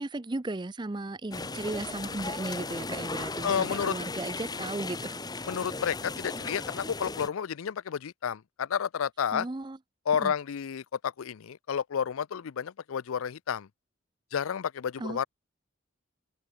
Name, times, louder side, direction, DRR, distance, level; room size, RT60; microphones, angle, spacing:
voice 1, 0.0-5.2 9.3-9.8 10.2-10.3 15.0-15.3, right 2 dB, 20° right, 0.5 m, -36 dB
sound 1, 1.3-7.3, left 3 dB, 20° left, 1.2 m, -36 dB
voice 2, 3.4-3.9 5.5-9.5 10.1-13.7 14.3-15.3, left 7 dB, 75° left, 0.4 m, -31 dB
open air
head